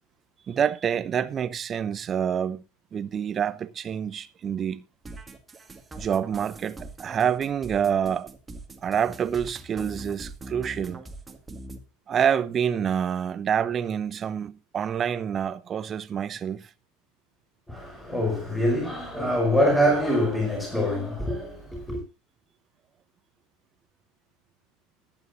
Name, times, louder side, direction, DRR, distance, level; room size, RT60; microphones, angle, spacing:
voice 1, 0.5-2.6 2.9-4.8 6.0-8.3 8.8-11.0 12.1-16.7, right 8 dB, 30° right, 0.8 m, -27 dB
sound 1, 5.0-11.8, right 2 dB, 15° right, 1.9 m, -42 dB
voice 2, 17.7-22.0, equal, 5° left, 5.1 m, -24 dB
21.0 x 9.2 x 2.5 m
figure-of-eight pair, 80°, 0 cm